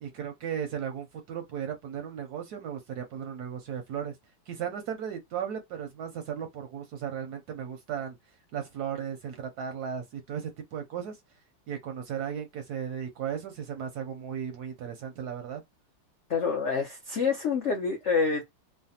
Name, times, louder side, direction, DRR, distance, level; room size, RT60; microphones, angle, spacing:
voice 1, 0.0-4.2 4.5-8.2 8.5-11.2 11.7-15.6, right 8 dB, 70° right, 1.0 m, -36 dB
voice 2, 16.3-18.4, left 5 dB, 75° left, 0.6 m, -27 dB
3.2 x 2.1 x 2.7 m
omnidirectional pair, 2.1 m